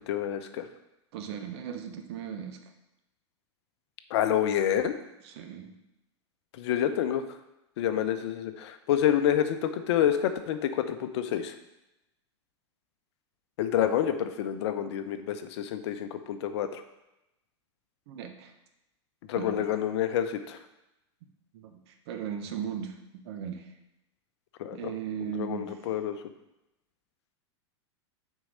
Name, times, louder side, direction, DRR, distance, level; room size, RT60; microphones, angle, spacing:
voice 1, 0.1-0.7 4.1-4.9 6.6-7.2 7.8-11.5 13.6-16.8 19.3-20.6 24.6-24.9 25.2-26.2, left 10 dB, 65° left, 9 dB, 0.8 m, -28 dB
voice 2, 1.1-2.6 5.2-5.7 18.1-18.5 19.4-19.7 21.5-23.7 24.7-25.9, right 8 dB, 60° right, 6 dB, 1.1 m, -37 dB
6.2 x 4.7 x 6.3 m, 0.92 s
hypercardioid pair, 105°, 15 cm